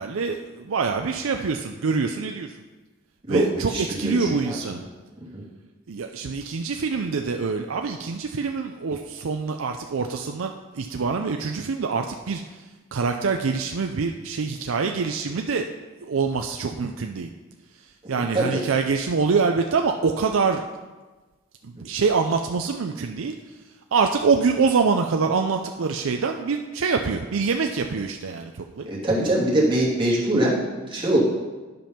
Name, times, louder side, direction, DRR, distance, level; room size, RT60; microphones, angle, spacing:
voice 1, 0.0-2.6 3.3-4.8 5.9-15.7 16.0-17.3 17.8-20.6 21.6-23.6 23.9-28.9, right 5 dB, 90° right, 4 dB, 0.5 m, -25 dB
voice 2, 3.3-4.8 5.3-5.4 18.2-18.6 28.8-31.2, right 1 dB, 25° right, -6 dB, 2.7 m, -23 dB
10.5 x 5.3 x 5.7 m, 1.3 s
head